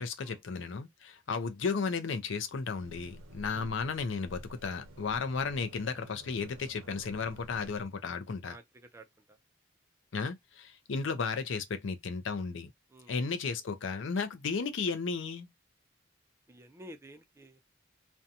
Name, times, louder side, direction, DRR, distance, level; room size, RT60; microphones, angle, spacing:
voice 1, 0.0-8.6 10.1-12.7 13.1-15.5, left 5 dB, 70° left, 0.5 m, -34 dB
sound 1, 2.8-7.8, right 1 dB, 85° right, 0.6 m, -51 dB
voice 2, 8.4-9.4 12.9-13.1 16.5-17.6, right 1 dB, 15° right, 0.3 m, -52 dB
2.5 x 2.2 x 2.7 m
head